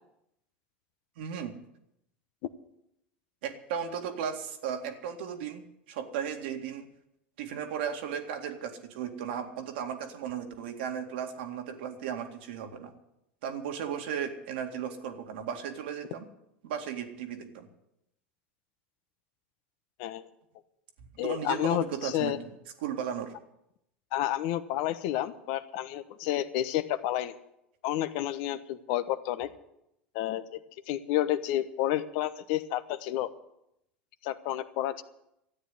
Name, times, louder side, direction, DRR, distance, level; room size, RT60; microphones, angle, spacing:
voice 1, 1.2-1.6 3.4-6.9 7.4-12.9 13.4-16.3 16.6-17.7 21.2-22.5 22.8-23.3, right 8 dB, 70° right, 5 dB, 2.1 m, -35 dB
voice 2, 21.2-22.4 24.1-27.3 27.8-29.5 30.1-30.4 30.9-33.3 34.2-35.0, left 13 dB, 60° left, 12 dB, 1.1 m, -30 dB
13.0 x 9.4 x 9.6 m, 0.81 s
hypercardioid pair, 85°, 6 cm